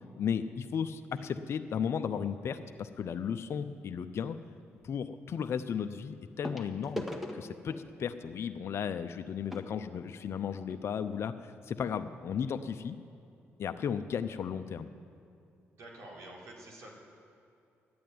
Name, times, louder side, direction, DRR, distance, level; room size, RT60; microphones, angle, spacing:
voice 1, 0.2-4.4 4.8-7.1 7.3-13.0 13.6-14.9, left 7 dB, 60° left, 8 dB, 0.6 m, -35 dB
sound 1, 2.9-3.2 4.8-4.9 6.4-10.8 11.6-11.7 11.9-12.1 12.6-12.7, left 1 dB, 5° right, 1.5 m, -43 dB
voice 2, 15.8-16.9, right 1 dB, 75° right, -3 dB, 3.4 m, -48 dB
12.0 x 8.7 x 9.4 m, 2.6 s
supercardioid pair, 65°, 5 cm